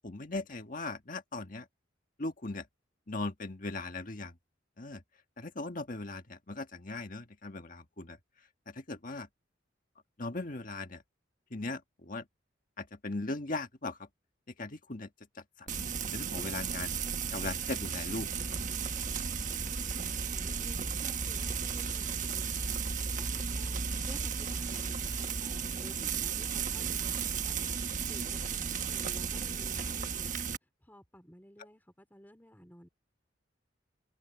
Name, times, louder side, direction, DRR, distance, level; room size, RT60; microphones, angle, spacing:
voice 1, 0.0-1.6 2.2-2.6 3.1-4.3 4.8-5.0 5.4-8.2 8.7-9.3 10.2-11.0 11.5-12.2 12.8-14.0 14.6-15.1 15.6-16.9 17.3-18.3, left 2 dB, 45° left, 1.7 m, -38 dB
Frying (food), 15.7-30.6, right 6 dB, 40° right, 1.2 m, -34 dB
voice 2, 19.5-22.7 23.1-27.7 28.1-30.4 30.8-32.9, equal, 10° left, 3.8 m, -55 dB
head